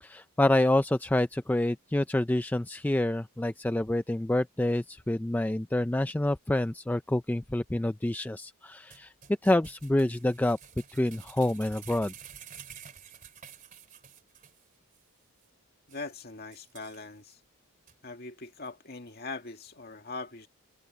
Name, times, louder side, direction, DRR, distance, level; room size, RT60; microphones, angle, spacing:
voice 1, 0.0-9.1 9.4-10.6 10.9-12.1, left 1 dB, 5° left, 0.3 m, -27 dB
sound 1, 8.9-14.6 14.9-15.0 15.4-15.5 15.9-16.1 16.5-17.3 17.9-18.0, right 8 dB, 35° right, 2.9 m, -50 dB
voice 2, 15.9-17.4 18.0-20.5, left 3 dB, 45° left, 2.0 m, -41 dB
head